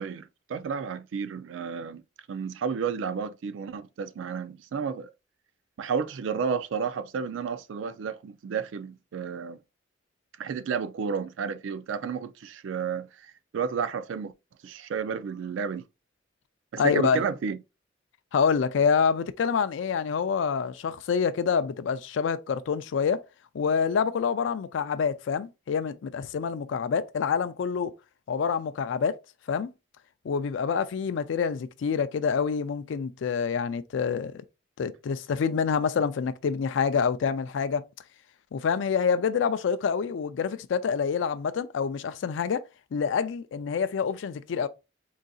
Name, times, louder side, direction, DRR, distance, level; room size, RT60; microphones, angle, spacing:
voice 1, 0.0-2.0 2.3-5.1 5.8-9.6 10.4-14.3 14.6-15.8 16.7-17.6, right 6 dB, 80° right, 0.3 m, -32 dB
voice 2, 16.8-17.2 18.3-23.2 23.5-27.9 28.3-29.2 29.5-29.7 30.2-34.4 34.8-37.8 38.5-42.6 42.9-44.7, left 6 dB, 75° left, 0.3 m, -27 dB
3.8 x 2.5 x 2.3 m
head